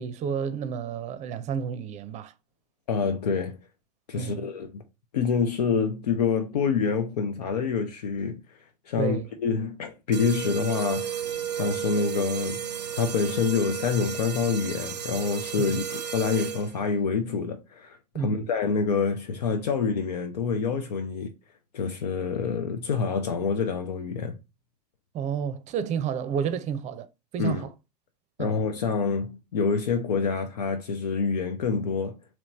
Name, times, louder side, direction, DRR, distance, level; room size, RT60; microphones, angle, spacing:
voice 1, 0.0-2.3 4.1-4.5 9.0-9.3 15.6-15.8 18.1-18.5 25.1-27.1 27.3-27.7 28.4-28.6, right 7 dB, 35° right, 0.5 m, -30 dB
voice 2, 2.9-3.6 4.1-4.8 5.1-8.4 8.9-11.2 11.5-12.7 13.0-21.3 21.7-24.4 27.4-27.6 28.4-32.2, left 5 dB, 75° left, 0.6 m, -27 dB
sound 1, 10.1-16.9, right 9 dB, 90° right, 0.5 m, -33 dB
3.1 x 3.0 x 4.0 m
figure-of-eight pair, 80°, 21 cm